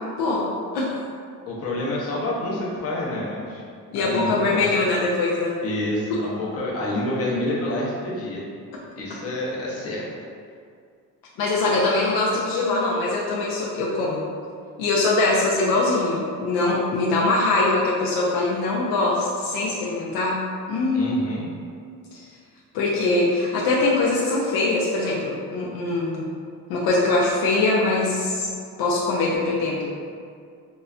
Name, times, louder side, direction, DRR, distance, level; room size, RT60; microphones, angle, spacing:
voice 1, 0.2-0.5 0.7-0.9 3.9-5.6 11.4-14.2 14.8-20.4 20.7-21.2 22.1-22.3 22.7-26.3 26.7-28.5 28.8-30.0, left 2 dB, 75° left, -5 dB, 0.5 m, -22 dB
voice 2, 1.5-3.6 3.9-4.7 5.6-8.4 9.0-10.1 20.9-21.5, left 1 dB, 40° left, -5 dB, 0.8 m, -28 dB
4.0 x 2.1 x 2.4 m, 2.2 s
cardioid pair, 115°, 36 cm